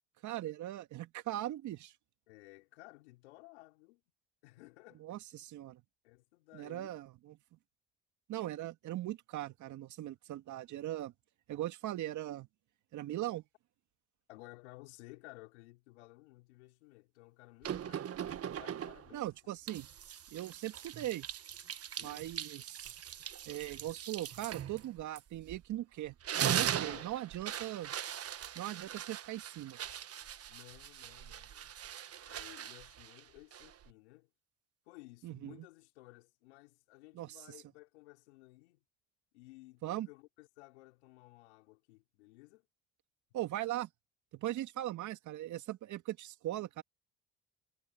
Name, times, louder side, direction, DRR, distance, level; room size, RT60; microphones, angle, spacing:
voice 1, 0.2-1.9 5.0-5.8 6.5-7.4 8.3-11.1 11.5-12.5 12.9-13.4 19.1-19.9 20.3-21.3 22.0-22.9 23.5-26.1 26.5-27.9 28.6-29.8 35.2-35.6 37.1-37.4 39.8-40.1 43.3-43.9 44.3-46.8, right 14 dB, 60° right, 2.2 m, -39 dB
voice 2, 2.3-4.0 4.4-5.2 6.0-7.0 14.3-18.2 18.6-19.3 21.9-22.3 26.8-27.1 30.5-31.7 32.2-34.3 34.8-38.8 39.3-42.7, left 22 dB, 85° left, 4.7 m, -56 dB
sound 1, 17.6-19.2 19.7-25.7 26.1-33.9, right 10 dB, 45° right, 1.4 m, -40 dB
hypercardioid pair, 65°, 32 cm